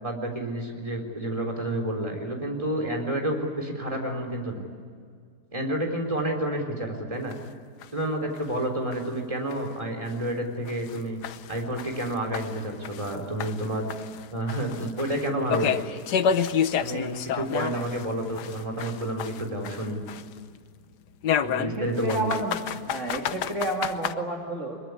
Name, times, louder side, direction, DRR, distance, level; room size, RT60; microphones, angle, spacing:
voice 1, 0.0-4.6 5.5-7.3 7.9-11.2 11.5-13.9 14.3-15.8 16.8-20.0 21.5-22.3, right 1 dB, 20° right, 3 dB, 4.1 m, -29 dB
sound 1, 7.3-7.4 7.8-7.9 8.4-8.5 8.9-9.0 9.5-9.6 10.1-10.2 10.7-13.1 13.4-18.0 18.4-20.4 21.2-24.1, left 8 dB, 80° left, 1.4 m, -29 dB
voice 2, 21.6-22.6 22.9-24.8, right 1 dB, 45° right, 0 dB, 2.9 m, -30 dB
23.5 x 22.5 x 9.7 m, 2.1 s
omnidirectional pair, 1.8 m